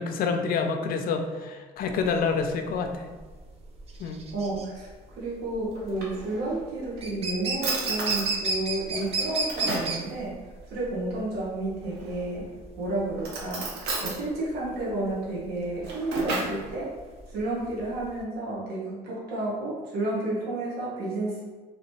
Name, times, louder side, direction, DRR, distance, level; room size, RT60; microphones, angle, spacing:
voice 1, 0.0-3.1 4.0-4.2, left 5 dB, 60° left, 5 dB, 0.4 m, -27 dB
sound 1, 1.8-18.2, right 3 dB, 35° right, 0.6 m, -33 dB
voice 2, 4.3-16.9 17.3-21.5, right 2 dB, 70° right, -7 dB, 1.2 m, -31 dB
Drawer open or close, 5.7-6.7 7.2-7.3 7.6-8.3 8.9-10.0 11.9-12.4 13.2-14.2 15.6-16.6, right 2 dB, 90° right, 0.8 m, -34 dB
3.0 x 2.8 x 3.0 m, 1.4 s
cardioid pair, 110°, 17 cm